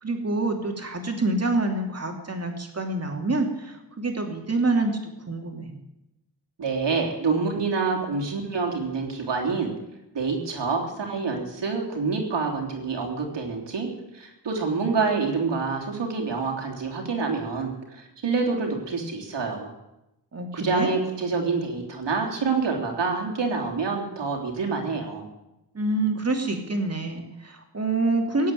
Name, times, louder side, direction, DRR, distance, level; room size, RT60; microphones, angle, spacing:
voice 1, 0.0-5.0 5.3-5.7 20.3-20.9 25.7-28.5, right 2 dB, 35° right, 4 dB, 2.7 m, -26 dB
voice 2, 6.6-9.7 10.1-19.7 20.5-25.3, right 4 dB, 85° right, 1 dB, 3.5 m, -27 dB
17.5 x 8.5 x 9.3 m, 0.93 s
wide cardioid pair, 125°, 41 cm